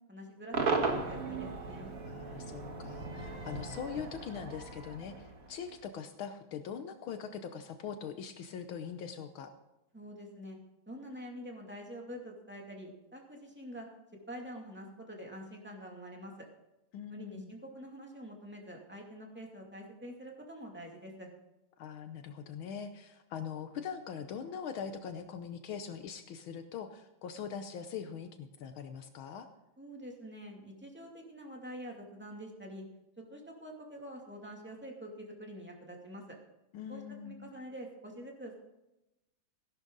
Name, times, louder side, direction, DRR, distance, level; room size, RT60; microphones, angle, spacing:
voice 1, 0.1-1.9 9.9-10.6 10.9-13.9 14.3-16.5 17.1-21.3 29.8-32.8 33.2-36.2 36.9-38.6, equal, 5° right, 0 dB, 2.3 m, -46 dB
Cheering / Crowd / Fireworks, 0.5-5.8, right 3 dB, 45° right, 1.9 m, -36 dB
voice 2, 2.0-9.5 16.9-17.5 21.8-29.5 36.7-37.5, left 7 dB, 75° left, 8 dB, 1.6 m, -42 dB
16.0 x 11.5 x 3.9 m, 0.92 s
omnidirectional pair, 2.3 m